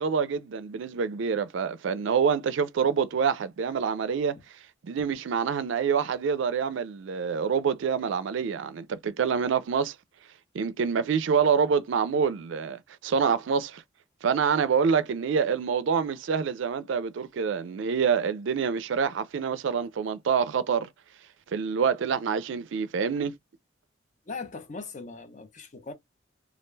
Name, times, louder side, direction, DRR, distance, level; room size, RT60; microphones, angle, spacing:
voice 1, 0.0-4.4 4.8-9.9 10.5-13.8 14.2-20.9 21.5-23.3, right 6 dB, 70° right, 0.4 m, -26 dB
voice 2, 24.3-25.9, left 4 dB, 35° left, 0.5 m, -39 dB
2.3 x 2.1 x 3.1 m
head